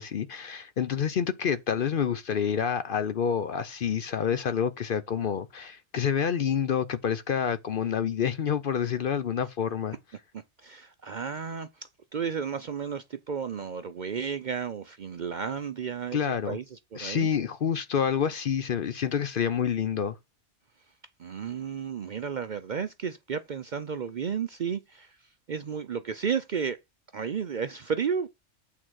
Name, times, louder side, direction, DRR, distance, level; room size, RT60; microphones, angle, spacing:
voice 1, 0.0-10.0 16.1-16.6 17.0-20.2, left 7 dB, 55° left, 0.7 m, -28 dB
voice 2, 10.3-17.3 21.2-25.1 25.5-26.8 27.1-28.3, right 6 dB, 55° right, 0.6 m, -33 dB
8.6 x 3.8 x 6.2 m
omnidirectional pair, 1.3 m